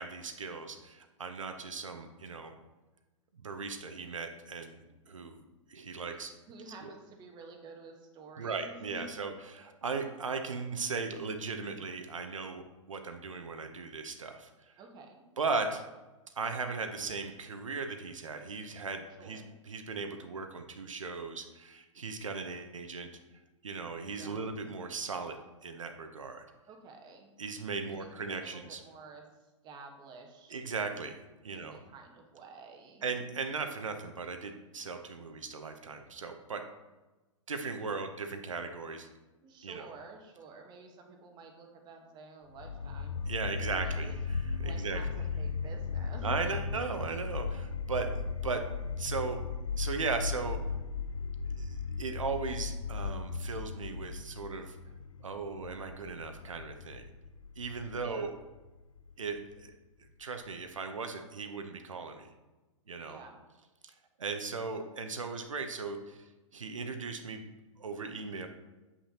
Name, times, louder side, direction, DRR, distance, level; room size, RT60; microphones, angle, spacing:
voice 1, 0.0-2.5 3.4-4.8 5.1-5.4 5.7-6.3 6.8-6.9 8.4-12.6 12.9-14.7 15.4-15.8 16.4-23.1 23.6-25.4 25.6-26.4 27.4-28.8 30.5-31.2 31.4-31.8 33.0-36.6 37.5-39.1 39.6-39.9 43.3-45.0 46.2-48.6 49.0-49.4 49.8-50.6 51.5-54.8 55.2-57.1 57.6-58.3 59.2-59.7 60.2-62.3 62.9-63.2 64.2-66.3 66.5-67.5 67.8-68.5, right 4 dB, 80° right, 6 dB, 0.7 m, -37 dB
voice 2, 6.1-9.3 14.8-15.2 19.2-19.5 24.1-24.4 26.7-27.3 27.9-30.5 31.5-33.1 39.4-43.2 43.8-44.1 44.6-46.4 57.9-58.3 63.0-63.3, right 3 dB, 25° right, 3 dB, 1.2 m, -51 dB
sound 1, 42.6-59.6, left 4 dB, 85° left, 0.5 m, -37 dB
8.2 x 5.7 x 2.8 m, 1.1 s
figure-of-eight pair, 110°, 17 cm